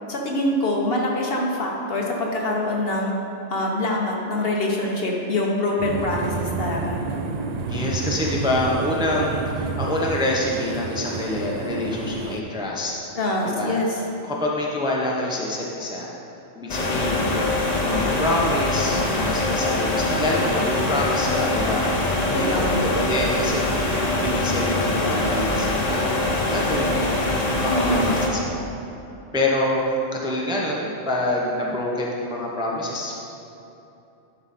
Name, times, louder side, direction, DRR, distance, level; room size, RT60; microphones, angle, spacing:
voice 1, 0.1-3.2 3.5-7.0 13.2-13.9 22.3-22.9 27.7-28.1, left 1 dB, 55° left, -2 dB, 1.2 m, -24 dB
sound 1, 5.8-12.4, right 4 dB, 70° right, 0.3 m, -30 dB
voice 2, 7.7-12.9 13.4-13.8 14.2-16.1 16.6-17.5 17.8-27.1 27.5-28.7 29.3-33.1, left 1 dB, 5° right, -3 dB, 0.6 m, -26 dB
sound 2, 16.7-28.3, left 2 dB, 40° left, 0.9 m, -23 dB
11.0 x 4.8 x 4.2 m, 2.9 s
omnidirectional pair, 1.2 m